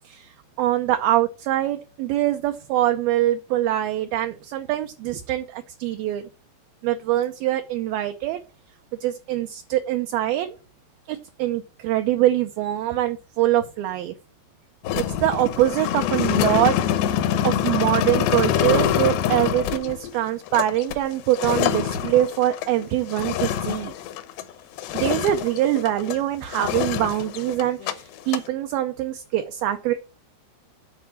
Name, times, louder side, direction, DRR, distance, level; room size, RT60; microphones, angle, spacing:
voice 1, 0.6-6.3 6.8-8.4 9.0-10.5 11.1-14.1 14.9-17.2 17.4-23.9 24.9-29.9, right 13 dB, 80° right, 6 dB, 2.2 m, -24 dB
sound 1, 14.8-24.5 24.8-26.2 26.5-27.9 28.2-28.5, left 10 dB, 80° left, 3.0 m, -25 dB
10.5 x 4.2 x 7.4 m, 0.34 s
omnidirectional pair, 4.9 m